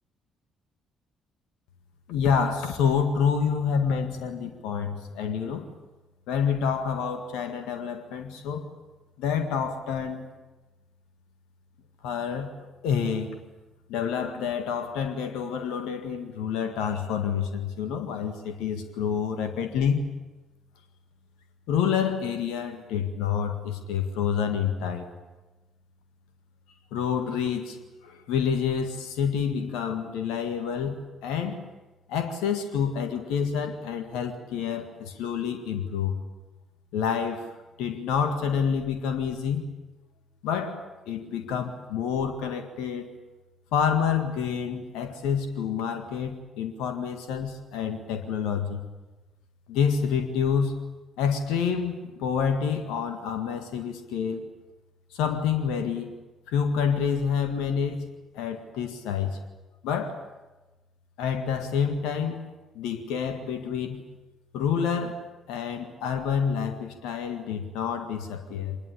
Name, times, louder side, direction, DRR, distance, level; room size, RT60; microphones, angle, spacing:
voice 1, 2.1-5.7 6.3-8.7 9.2-10.3 12.0-12.5 12.8-13.4 13.9-20.0 21.7-25.1 26.9-27.8 28.0-31.7 32.1-36.2 36.9-37.5 37.8-39.6 40.4-43.1 43.7-48.9 49.7-50.8 51.2-54.5 55.1-56.1 56.5-58.1 58.4-59.4 59.8-60.2 61.2-62.4 62.8-64.0 64.5-65.2 65.5-68.8, left 7 dB, 65° left, 7 dB, 1.8 m, -28 dB
25.0 x 20.5 x 8.5 m, 1.1 s
figure-of-eight pair, 45°, 0 cm